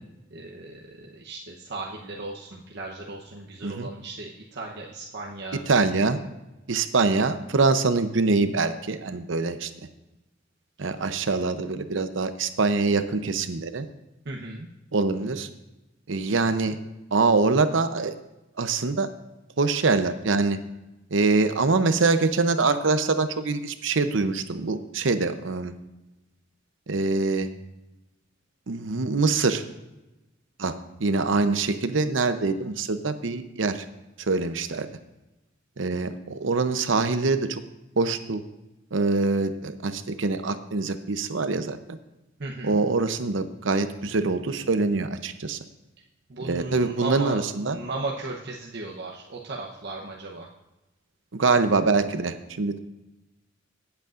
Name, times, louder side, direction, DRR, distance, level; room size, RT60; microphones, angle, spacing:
voice 1, 0.3-5.6 14.2-14.7 42.4-42.8 46.3-50.5, right 2 dB, 60° right, -1 dB, 0.9 m, -36 dB
voice 2, 5.7-6.2 6.7-9.7 10.8-13.9 14.9-15.5 16.1-16.8 17.1-18.1 18.6-19.1 19.6-20.6 21.1-25.7 26.9-27.5 28.7-29.6 30.6-30.7 31.0-33.8 34.3-34.9 35.8-37.6 38.0-38.4 38.9-41.8 42.6-45.6 46.4-47.8 51.3-52.8, right 3 dB, 90° right, 10 dB, 0.7 m, -24 dB
17.0 x 8.2 x 2.5 m, 0.99 s
head